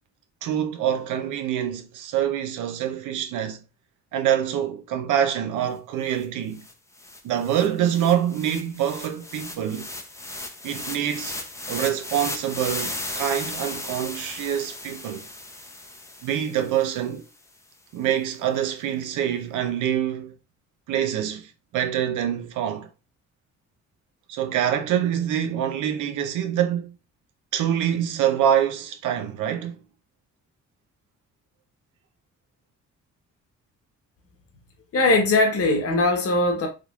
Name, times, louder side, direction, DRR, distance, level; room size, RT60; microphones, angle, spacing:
voice 1, 0.4-3.6 4.1-6.7 7.2-9.9 10.6-11.4 11.7-15.3 16.2-17.2 17.9-20.3 20.9-22.9 24.3-26.9 27.5-29.8, right 10 dB, 80° right, 0.7 m, -25 dB
sound 1, 6.2-6.3 6.6-16.9, left 2 dB, 10° left, 0.6 m, -36 dB
voice 2, 34.9-36.7, left 2 dB, 50° left, 1.0 m, -20 dB
3.7 x 3.1 x 2.3 m
cardioid pair, 90°, 30 cm